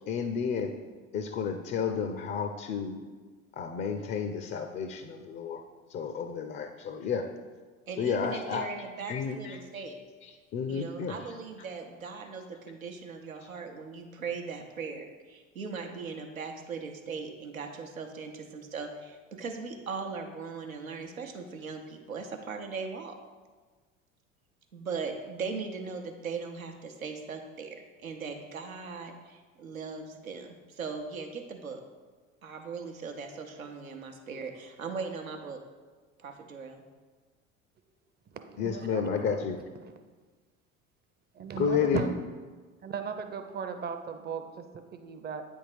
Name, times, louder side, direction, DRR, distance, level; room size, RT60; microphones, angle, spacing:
voice 1, 0.1-0.7 1.1-3.1 3.6-5.6 5.9-7.3 8.0-8.7 9.1-9.6 10.5-11.1 38.6-39.6 41.6-42.1, left 6 dB, 30° left, 5 dB, 0.5 m, -31 dB
voice 2, 7.9-10.0 10.7-23.2 24.7-31.8 32.4-35.6 36.2-36.8, right 5 dB, 90° right, 3 dB, 0.8 m, -39 dB
voice 3, 38.4-39.1 39.8-39.9 41.3-42.1 42.8-45.4, right 6 dB, 25° right, 7 dB, 0.6 m, -37 dB
8.6 x 3.6 x 4.8 m, 1.4 s
figure-of-eight pair, 70°, 40 cm